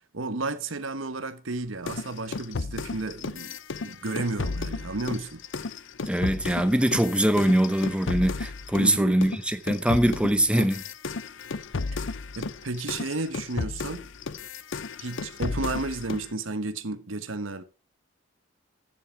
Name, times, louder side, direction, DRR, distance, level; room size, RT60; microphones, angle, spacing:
voice 1, 0.1-5.4 8.8-9.2 12.3-14.1 15.0-17.6, right 3 dB, 90° right, 1.2 m, -32 dB
sound 1, 1.9-8.9 9.2-16.3, left 4 dB, 70° left, 0.7 m, -34 dB
voice 2, 6.1-10.8, right 1 dB, 5° right, 0.7 m, -23 dB
15.0 x 7.3 x 4.5 m
head